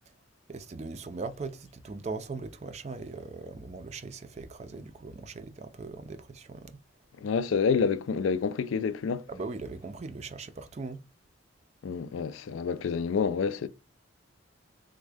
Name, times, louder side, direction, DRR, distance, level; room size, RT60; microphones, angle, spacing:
voice 1, 0.5-6.8 9.3-11.0, right 3 dB, 35° right, 0.4 m, -39 dB
voice 2, 7.2-9.3 11.8-13.7, left 6 dB, 85° left, 0.4 m, -28 dB
3.5 x 2.1 x 3.4 m
head